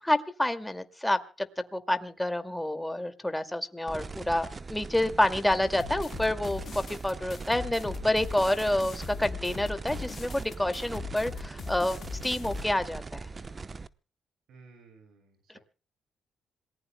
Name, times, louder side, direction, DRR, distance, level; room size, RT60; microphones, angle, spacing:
voice 1, 0.0-1.5 1.7-13.3, left 1 dB, 10° left, 8 dB, 2.2 m, -28 dB
sound 1, 3.9-13.9, right 4 dB, 35° right, 0.9 m, -40 dB
sound 2, 5.8-12.6, left 7 dB, 60° left, 0.8 m, -41 dB
voice 2, 14.5-15.6, right 4 dB, 75° right, 5 dB, 6.3 m, -55 dB
27.0 x 19.5 x 2.2 m, 0.38 s
supercardioid pair, 70°, 0 cm